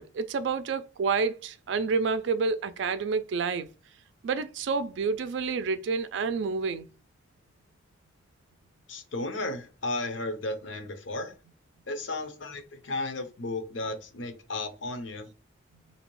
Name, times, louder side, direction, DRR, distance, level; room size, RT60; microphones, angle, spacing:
voice 1, 0.0-3.7 4.2-6.9, right 5 dB, 65° right, 0.3 m, -29 dB
voice 2, 8.9-11.3 11.9-15.3, left 2 dB, 75° left, 0.7 m, -34 dB
3.0 x 2.7 x 3.0 m
head